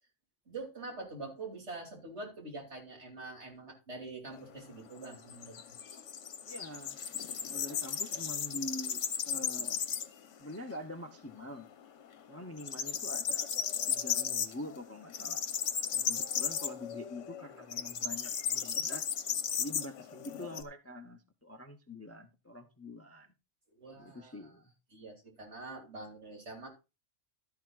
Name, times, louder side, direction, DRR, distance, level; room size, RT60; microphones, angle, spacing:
voice 1, 0.5-5.6 5.9-6.0 23.7-24.5 24.9-26.7, right 3 dB, 65° right, 1 dB, 3.2 m, -45 dB
sound 1, 4.3-10.3 10.6-10.7 11.1-11.9 12.1-20.6, left 7 dB, 75° left, 1.2 m, -35 dB
voice 2, 6.5-7.0 7.5-9.8 10.4-11.7 12.3-13.5 13.9-15.4 15.9-19.1 19.6-23.3 24.0-24.7, left 1 dB, 15° left, 6 dB, 0.6 m, -45 dB
12.0 x 10.5 x 2.4 m, 0.28 s
omnidirectional pair, 1.3 m